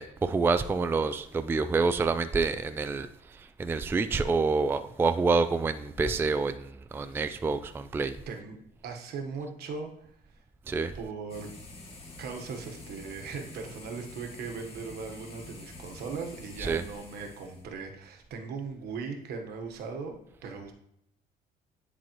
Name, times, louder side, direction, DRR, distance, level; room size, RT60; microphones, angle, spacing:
voice 1, 0.0-3.1 3.6-6.5 6.9-8.2 10.7-10.9 16.6-16.8, right 4 dB, 15° right, 11 dB, 0.3 m, -27 dB
voice 2, 8.3-8.6 8.8-10.4 10.9-11.5 12.2-20.7, right 5 dB, 70° right, 4 dB, 1.2 m, -39 dB
sound 1, 11.3-17.6, left 2 dB, 35° left, 1.8 m, -47 dB
10.5 x 4.0 x 3.0 m, 0.76 s
cardioid pair, 110°, 17 cm